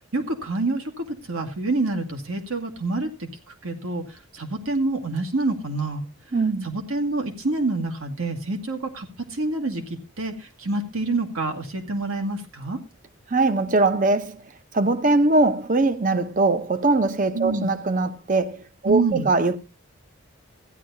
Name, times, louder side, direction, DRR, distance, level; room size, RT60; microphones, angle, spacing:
voice 1, 0.1-3.3 3.6-6.0 6.6-12.8 17.3-17.7 18.8-19.3, right 2 dB, 85° right, 2.0 m, -27 dB
voice 2, 6.3-6.7 13.3-14.4 14.7-19.6, right 2 dB, 35° right, 0.7 m, -21 dB
15.5 x 10.5 x 2.7 m
head